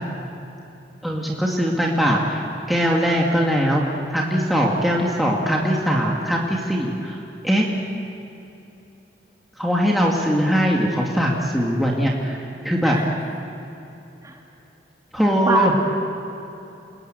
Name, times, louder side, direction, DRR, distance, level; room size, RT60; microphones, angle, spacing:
voice 1, 1.0-2.4 2.7-3.8 4.1-7.2 7.4-7.7 9.6-12.4 12.6-13.0 15.1-15.7, equal, ahead, -3 dB, 2.4 m, -21 dB
voice 2, 15.2-15.8, right 2 dB, 20° right, 0 dB, 2.6 m, -25 dB
28.5 x 21.0 x 9.4 m, 3.0 s
head